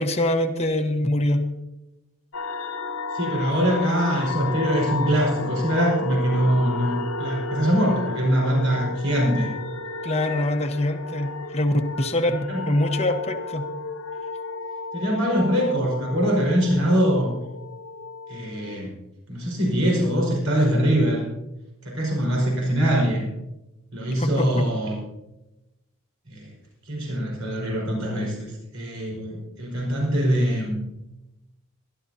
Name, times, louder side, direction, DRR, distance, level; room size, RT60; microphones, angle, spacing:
voice 1, 0.0-1.4 10.0-13.7 24.2-24.7, left 1 dB, 30° left, 4 dB, 1.1 m, -24 dB
sound 1, 2.3-18.8, left 3 dB, 70° left, 0.7 m, -33 dB
voice 2, 3.1-9.5 12.5-12.7 14.9-17.3 18.3-18.9 19.3-21.2 21.8-23.3 23.9-25.0 26.3-26.5 26.9-30.8, equal, 65° right, -2 dB, 4.8 m, -23 dB
23.5 x 12.0 x 2.8 m, 0.95 s
head